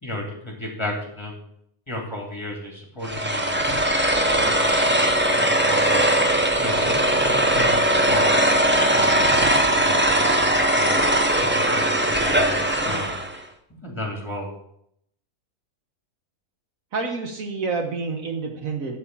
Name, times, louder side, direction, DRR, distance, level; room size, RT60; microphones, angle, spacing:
voice 1, 0.0-1.4 1.9-3.6 4.4-6.1 6.6-8.3 8.9-9.3 9.7-11.0 11.3-13.2 13.8-14.5, left 1 dB, 20° left, -1 dB, 2.6 m, -33 dB
sound 1, 3.0-13.4, right 1 dB, 10° right, 0.7 m, -20 dB
voice 2, 4.1-4.5 9.2-9.6 16.9-19.0, right 4 dB, 65° right, 4 dB, 1.5 m, -29 dB
11.0 x 4.3 x 7.3 m, 0.73 s
omnidirectional pair, 1.6 m